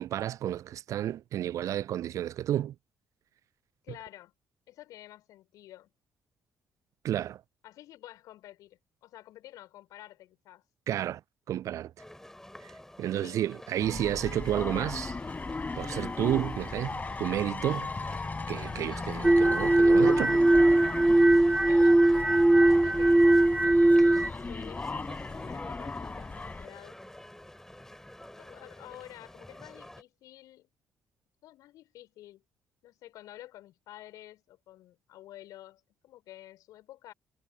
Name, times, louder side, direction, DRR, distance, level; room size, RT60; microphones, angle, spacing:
voice 1, 0.0-2.7 7.0-7.4 10.9-11.2 11.5-11.9 12.6-12.7 13.0-15.2 15.8-17.9 18.5-20.5, right 11 dB, 55° right, 0.5 m, -31 dB
voice 2, 3.8-4.3 4.7-5.9 7.6-10.6 13.2-13.4 18.1-18.4 21.6-22.1 22.5-23.6 24.4-27.0 28.4-30.7 31.4-32.4 32.8-37.1, left 14 dB, 60° left, 6.4 m, -50 dB
sound 1, 12.0-30.0, left 1 dB, 5° left, 7.5 m, -49 dB
sound 2, 13.8-26.7, left 3 dB, 25° left, 4.5 m, -37 dB
sound 3, 19.2-24.3, right 1 dB, 10° right, 0.9 m, -20 dB
figure-of-eight pair, 45°, 7 cm